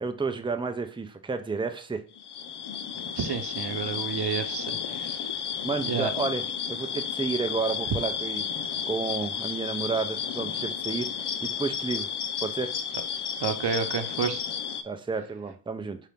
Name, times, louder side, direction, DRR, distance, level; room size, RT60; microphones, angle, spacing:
voice 1, 0.0-2.0 5.6-6.4 6.7-8.4 8.9-12.1 12.4-12.7 14.8-16.0, right 4 dB, 10° right, 7 dB, 0.5 m, -31 dB
sound 1, 2.2-14.8, left 7 dB, 80° left, 0.6 m, -32 dB
voice 2, 3.2-5.2 5.9-6.1 13.4-14.4, right 6 dB, 80° right, 8 dB, 0.8 m, -30 dB
4.9 x 2.8 x 3.5 m, 0.42 s
wide cardioid pair, 80°, 40 cm